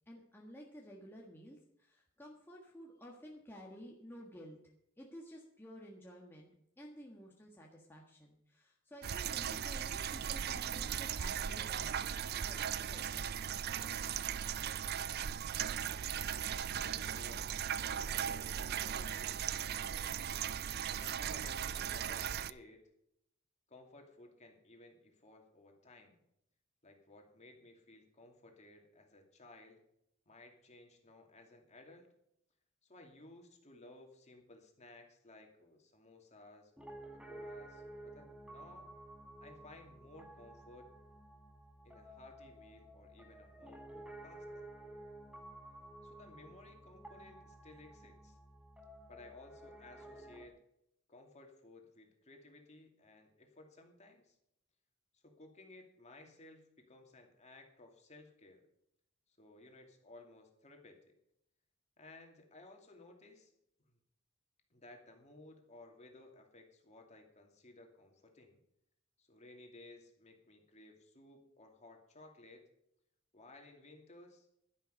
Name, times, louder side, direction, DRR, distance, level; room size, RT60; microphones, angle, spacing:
voice 1, 0.1-4.6 5.0-6.5 6.8-12.2 12.4-13.2, equal, 10° left, -2 dB, 1.6 m, -53 dB
sound 1, 9.0-22.5, right 9 dB, 50° right, 0.4 m, -38 dB
voice 2, 16.7-20.2 20.9-22.8 23.7-26.2 26.8-29.8 30.3-32.1 32.8-37.0 37.3-38.9 39.4-40.9 41.8-44.7 46.0-48.4 49.1-50.6 51.1-54.4 55.1-58.6 59.3-61.0 62.0-63.5 64.7-68.6 69.2-72.6 73.3-74.5, left 2 dB, 35° left, 2 dB, 2.5 m, -58 dB
Piano, 36.8-50.5, right 1 dB, 5° right, 1.4 m, -53 dB
11.5 x 11.0 x 5.3 m, 0.76 s
head